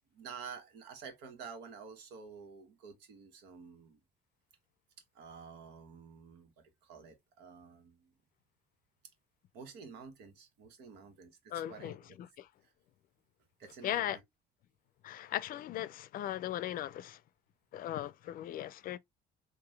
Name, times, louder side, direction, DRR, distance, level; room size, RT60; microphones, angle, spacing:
voice 1, 0.1-4.0 5.1-8.1 9.5-12.2 13.6-14.2, right 6 dB, 90° right, 1.4 m, -50 dB
voice 2, 11.5-12.5 13.8-14.2 15.0-17.2 17.7-19.0, left 12 dB, 55° left, 0.4 m, -38 dB
4.0 x 2.6 x 3.2 m
cardioid pair, 110°, 17 cm